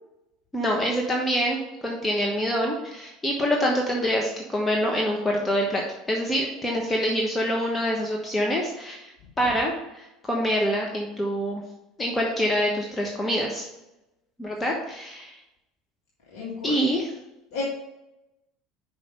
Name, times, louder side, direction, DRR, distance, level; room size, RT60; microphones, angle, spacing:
voice 1, 0.5-1.6 1.8-5.8 6.1-9.1 9.4-11.6 12.0-13.6 14.4-15.4 16.6-17.1, equal, 15° left, 0 dB, 1.1 m, -25 dB
voice 2, 16.3-16.9 17.5-17.6, left 4 dB, 65° left, -5 dB, 1.6 m, -33 dB
5.3 x 5.2 x 5.1 m, 0.93 s
figure-of-eight pair, 70°, 0 cm